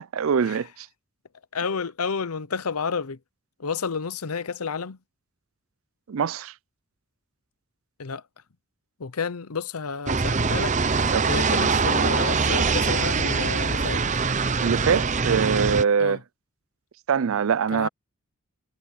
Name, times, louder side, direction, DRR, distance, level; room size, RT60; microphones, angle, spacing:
voice 1, 0.1-0.9 6.1-6.5 11.1-11.4 14.6-16.2 17.1-17.9, right 6 dB, 65° right, 0.4 m, -23 dB
voice 2, 1.5-3.2 3.6-5.0 8.0-8.2 9.0-14.0 16.0-16.2 17.7-17.9, left 5 dB, 90° left, 0.8 m, -30 dB
sound 1, 10.1-15.8, right 4 dB, 35° right, 0.8 m, -23 dB
head